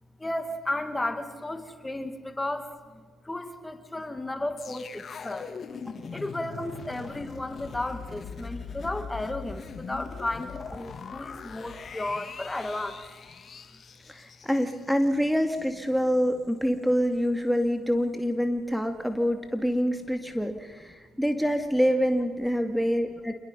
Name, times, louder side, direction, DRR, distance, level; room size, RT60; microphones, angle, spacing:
voice 1, 0.2-5.5 5.9-13.0, left 1 dB, 15° left, 8 dB, 2.3 m, -34 dB
sound 1, 4.6-15.8 16.1-16.2, left 6 dB, 55° left, 1.9 m, -41 dB
voice 2, 14.1-23.3, equal, ahead, 6 dB, 2.2 m, -26 dB
27.5 x 21.5 x 5.6 m, 1.5 s
supercardioid pair, 60°, 0 cm